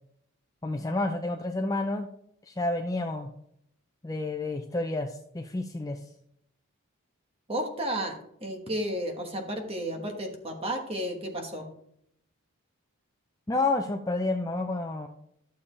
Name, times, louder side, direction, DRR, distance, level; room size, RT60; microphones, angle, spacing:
voice 1, 0.6-2.1 2.5-3.3 4.0-6.0 13.5-15.1, left 2 dB, 15° left, 4 dB, 0.5 m, -30 dB
voice 2, 7.5-8.1 8.4-11.7, right 1 dB, 25° right, 3 dB, 1.3 m, -32 dB
12.0 x 6.9 x 3.3 m, 0.73 s
head